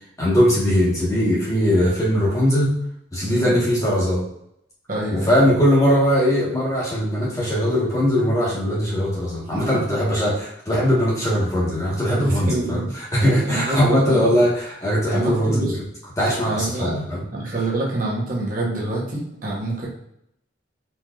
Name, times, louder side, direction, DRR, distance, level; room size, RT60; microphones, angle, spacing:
voice 1, 0.2-2.7 3.1-4.2 5.1-12.8 13.1-15.8 16.2-17.2, equal, 15° left, -6 dB, 1.2 m, -20 dB
voice 2, 3.2-3.6 4.9-5.5 9.5-9.7 12.0-12.9 13.2-14.3 15.1-15.8 16.5-16.9 17.3-19.9, right 2 dB, 45° right, -4 dB, 1.0 m, -26 dB
4.3 x 3.2 x 2.3 m, 0.76 s
head